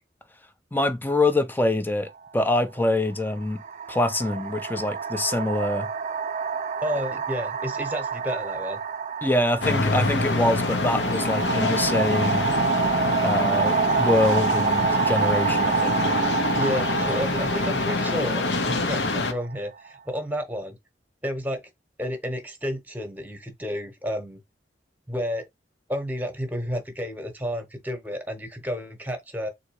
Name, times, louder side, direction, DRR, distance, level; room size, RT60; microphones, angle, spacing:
voice 1, 0.7-3.6 3.9-5.9 9.2-12.5 13.2-16.0, left 2 dB, 10° left, 0.6 m, -25 dB
sound 1, 2.1-2.3 3.2-19.9, right 6 dB, 40° right, 0.4 m, -28 dB
voice 2, 6.8-8.8 16.5-20.8 21.2-21.6 22.0-24.4 25.1-25.5 25.9-29.5, equal, 10° right, 1.1 m, -31 dB
sound 2, 9.6-19.3, left 2 dB, 70° left, 0.9 m, -26 dB
4.0 x 2.8 x 4.7 m
head